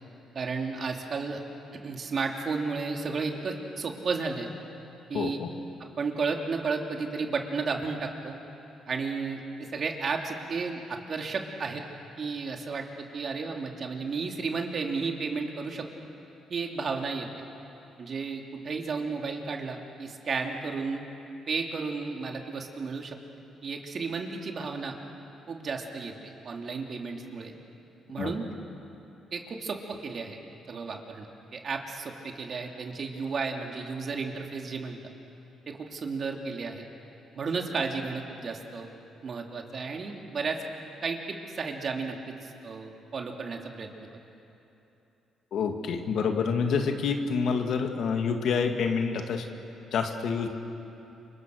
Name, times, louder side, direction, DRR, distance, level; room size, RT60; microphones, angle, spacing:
voice 1, 0.3-1.4 1.8-4.5 5.1-5.4 5.8-8.4 8.9-11.8 12.2-15.9 16.5-17.3 18.0-21.0 21.5-23.2 23.6-25.0 25.5-27.5 28.1-28.4 29.3-30.4 30.7-35.1 35.7-36.8 37.3-38.9 39.2-40.6 41.0-43.9, right 4 dB, 50° right, 2 dB, 2.8 m, -33 dB
voice 2, 5.1-5.5 28.2-28.3 45.5-49.5 49.9-50.5, left 5 dB, 70° left, 5 dB, 2.1 m, -27 dB
28.0 x 25.0 x 6.5 m, 2.9 s
cardioid pair, 90°, 0 cm